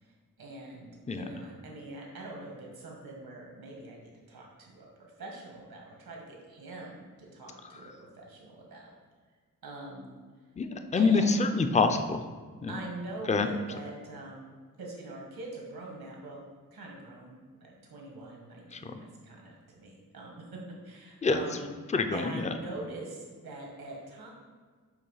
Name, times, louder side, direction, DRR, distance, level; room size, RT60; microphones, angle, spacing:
voice 1, 0.4-4.9 5.2-7.0 7.3-8.9 9.6-10.1 11.0-11.4 12.7-16.4 16.7-21.8 22.1-24.3, right 2 dB, 85° right, -1 dB, 1.6 m, -43 dB
voice 2, 10.6-12.2 12.6-12.8 13.3-13.5 18.7-18.9 21.2-21.4 21.9-22.5, left 4 dB, 20° left, 7 dB, 0.4 m, -26 dB
7.0 x 3.1 x 5.6 m, 1.5 s
wide cardioid pair, 80°, 35 cm